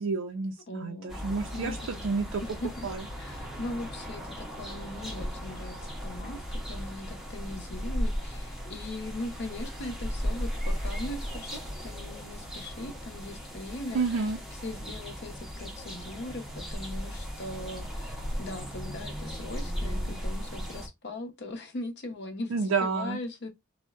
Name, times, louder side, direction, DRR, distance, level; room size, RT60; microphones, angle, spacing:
voice 1, 0.0-1.8 2.0-2.4 2.8-3.0 13.9-14.4 22.5-23.2, right 4 dB, 60° right, 0.4 m, -29 dB
voice 2, 0.7-1.2 1.5-2.1 2.4-14.3 14.6-23.5, left 1 dB, 50° left, 0.7 m, -40 dB
sound 1, 1.1-20.9, equal, ahead, 0.5 m, -36 dB
3.6 x 2.0 x 2.3 m
head